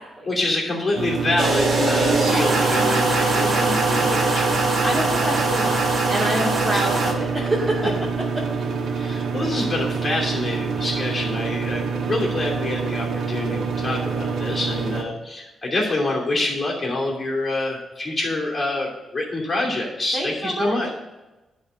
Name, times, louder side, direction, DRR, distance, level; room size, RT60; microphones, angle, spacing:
voice 1, 0.2-4.6 6.7-6.8 8.9-21.0, left 2 dB, 30° left, -3 dB, 2.8 m, -26 dB
sound 1, 1.0-15.0, right 5 dB, 80° right, 1.2 m, -26 dB
sound 2, 1.4-7.1, right 2 dB, 50° right, 1.8 m, -22 dB
voice 2, 3.3-4.2 4.7-8.1 8.4-8.5 20.1-20.8, right 1 dB, 20° right, -2 dB, 2.1 m, -28 dB
11.0 x 4.0 x 7.8 m, 1.0 s
cardioid pair, 120°, 0 cm